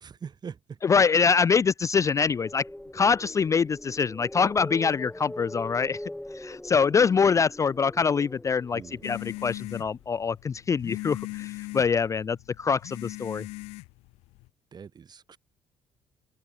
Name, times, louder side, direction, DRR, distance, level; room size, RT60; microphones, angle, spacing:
voice 1, 0.0-0.8 8.7-9.0 14.7-15.4, right 6 dB, 40° right, 3.1 m, -42 dB
voice 2, 0.8-2.6 2.9-6.0 6.3-13.5, left 5 dB, 30° left, 0.3 m, -24 dB
sound 1, 2.2-10.2, left 1 dB, 5° left, 4.2 m, -42 dB
sound 2, 9.0-14.5, left 23 dB, 85° left, 2.4 m, -39 dB
open air
supercardioid pair, 70°, 10 cm